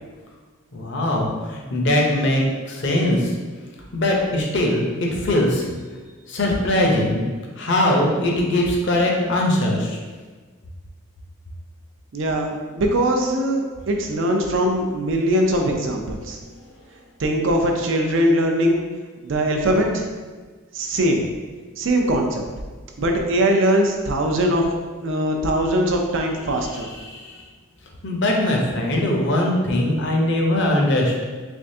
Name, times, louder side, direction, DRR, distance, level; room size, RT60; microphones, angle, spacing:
voice 1, 0.7-3.3 3.9-5.7 6.3-7.2 7.6-10.0 26.9-27.3 28.0-31.2, left 1 dB, 55° left, -1 dB, 0.6 m, -21 dB
voice 2, 12.1-16.4 17.2-18.8 19.2-20.0 20.7-21.2 21.8-22.4 23.0-24.6 25.0-26.9, right 1 dB, 60° right, 2 dB, 0.5 m, -21 dB
3.5 x 3.3 x 2.7 m, 1.4 s
head